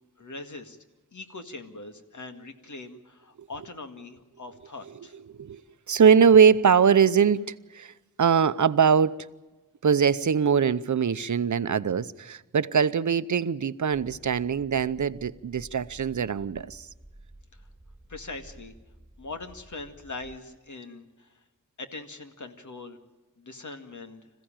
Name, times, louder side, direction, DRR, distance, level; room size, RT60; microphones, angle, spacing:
voice 1, 0.2-0.8 1.1-5.1 17.5-17.6 18.1-18.7 19.2-21.4 21.8-23.0 23.4-24.2, left 3 dB, 65° left, 2.1 m, -41 dB
voice 2, 5.3-5.6 5.9-9.3 9.8-16.9, right 7 dB, 65° right, 0.7 m, -22 dB
sound 1, 13.9-20.4, right 1 dB, ahead, 3.4 m, -51 dB
26.5 x 15.5 x 8.9 m
wide cardioid pair, 100°, 32 cm